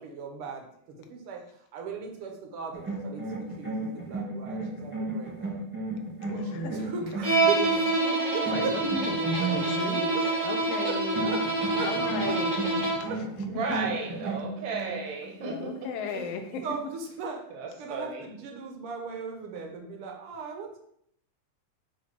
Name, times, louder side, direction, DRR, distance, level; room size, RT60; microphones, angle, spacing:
voice 1, 0.0-5.7 6.3-7.6 8.3-8.7 10.1-10.2 10.8-10.9 11.2-11.4 11.6-11.9 12.1-12.3 13.0-13.2 16.1-16.3 16.6-17.4 17.8-20.8, right 6 dB, 65° right, 2 dB, 1.4 m, -38 dB
sound 1, 2.7-7.9 8.4-10.0 11.1-15.0, right 2 dB, 5° right, 0.9 m, -34 dB
voice 2, 6.3-6.9 8.3-10.2 10.4-11.2 11.8-13.4 15.5-16.7, left 5 dB, 80° left, 5 dB, 1.4 m, -37 dB
Bowed string instrument, 7.2-13.2, right 2 dB, 45° right, 1.0 m, -27 dB
voice 3, 8.0-8.4 13.5-15.7 17.5-18.3, right 4 dB, 90° right, -1 dB, 3.1 m, -34 dB
7.5 x 2.7 x 5.8 m, 0.70 s
omnidirectional pair, 3.7 m